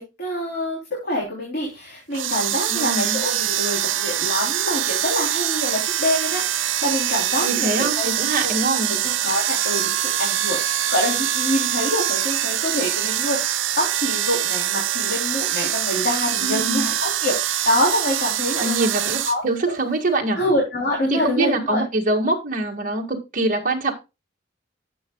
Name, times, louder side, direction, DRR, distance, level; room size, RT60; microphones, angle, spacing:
voice 1, 0.0-8.1 8.4-8.5 8.9-9.8 10.2-19.7 20.3-21.8, left 1 dB, 50° left, -3 dB, 3.4 m, -26 dB
sound 1, 2.1-19.3, right 11 dB, 75° right, 0.8 m, -24 dB
voice 2, 2.7-3.2 7.4-8.9 16.4-16.8 18.6-20.4 21.1-23.9, right 2 dB, 45° right, 1 dB, 1.8 m, -24 dB
11.5 x 7.5 x 2.3 m, 0.26 s
head